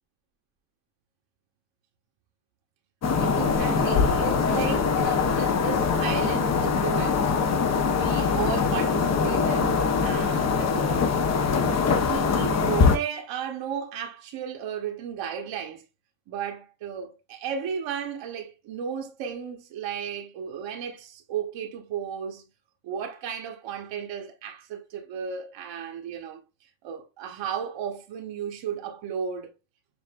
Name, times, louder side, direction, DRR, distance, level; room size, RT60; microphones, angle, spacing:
sound 1, 3.0-13.0, left 5 dB, 35° left, 0.7 m, -23 dB
voice 1, 3.2-7.3 7.9-11.1 11.9-15.8 16.3-22.4 22.8-26.4 26.8-29.5, right 8 dB, 70° right, 1.0 m, -34 dB
7.0 x 2.6 x 2.3 m
cardioid pair, 105°, 45 cm